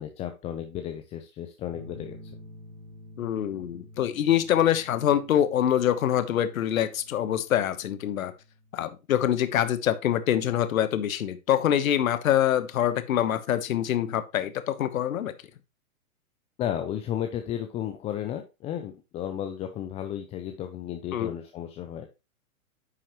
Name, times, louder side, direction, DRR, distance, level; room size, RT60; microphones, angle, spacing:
voice 1, 0.0-2.3 16.6-22.1, left 10 dB, 15° left, 6 dB, 0.5 m, -33 dB
sound 1, 1.7-9.0, left 1 dB, 30° right, 3.2 m, -50 dB
voice 2, 3.2-8.3 8.7-15.3 21.1-21.3, left 11 dB, 70° left, 12 dB, 1.1 m, -25 dB
9.6 x 5.8 x 3.0 m, 0.28 s
hypercardioid pair, 120°, 43 cm